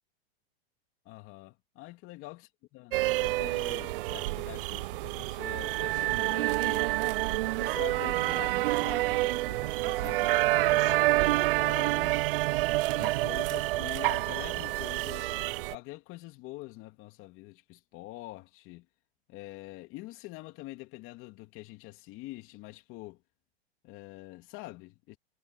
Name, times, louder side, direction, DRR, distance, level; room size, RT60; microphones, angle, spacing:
voice 1, 1.0-2.4 2.7-6.9 7.5-12.3 12.9-18.9 19.3-23.2 23.8-25.2, left 19 dB, 40° left, 2.9 m, -45 dB
sound 1, 2.9-15.8, right 19 dB, 60° right, 0.5 m, -28 dB
hypercardioid pair, 130°, 32 cm